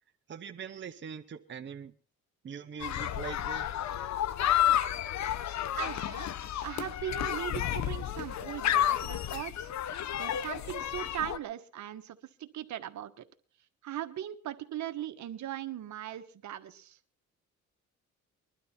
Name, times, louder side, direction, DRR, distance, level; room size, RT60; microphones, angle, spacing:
voice 1, 0.3-1.9 2.4-3.7, right 7 dB, 40° right, 6 dB, 1.0 m, -42 dB
sound 1, 2.8-11.4, left 11 dB, 65° left, 0.9 m, -31 dB
voice 2, 5.8-9.7 10.1-13.2 13.8-17.0, right 12 dB, 70° right, 9 dB, 1.5 m, -39 dB
21.5 x 12.0 x 4.4 m, 0.40 s
cardioid pair, 90°, 30 cm